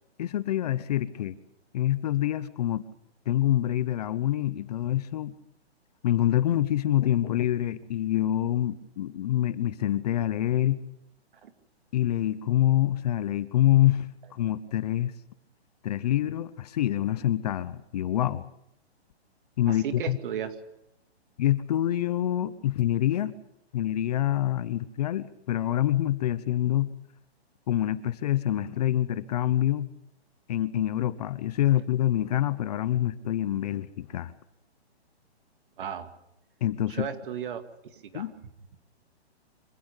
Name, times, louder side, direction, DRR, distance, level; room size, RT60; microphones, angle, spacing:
voice 1, 0.2-1.3 1.7-2.8 3.3-5.3 6.0-10.8 11.9-15.1 15.8-18.4 19.6-20.2 21.4-23.3 23.7-26.9 27.7-29.9 30.5-34.3 36.6-37.1 38.1-38.3, left 13 dB, 35° left, 15 dB, 0.9 m, -26 dB
voice 2, 19.7-20.5 35.8-36.1 36.9-37.6 37.9-38.3, right 8 dB, 50° right, 8 dB, 2.4 m, -34 dB
25.5 x 15.5 x 8.2 m, 0.82 s
hypercardioid pair, 160°, 33 cm